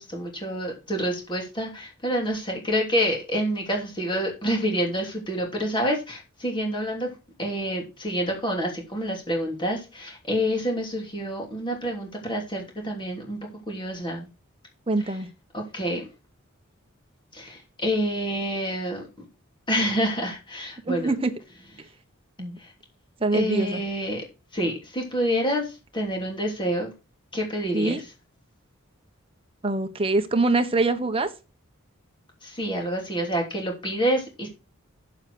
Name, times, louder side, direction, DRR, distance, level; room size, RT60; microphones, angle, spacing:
voice 1, 0.0-13.4 13.7-14.3 15.0-15.2 15.5-16.1 17.3-19.2 19.7-21.1 22.6-22.7 23.3-24.2 24.5-26.9 27.3-28.1 32.4-34.5, equal, 25° left, 3.0 m, -28 dB
voice 2, 14.9-15.3 20.9-21.3 22.4-22.6 23.2-23.8 27.7-28.0 29.6-31.3, right 3 dB, 25° right, 1.1 m, -24 dB
7.5 x 7.3 x 4.9 m
head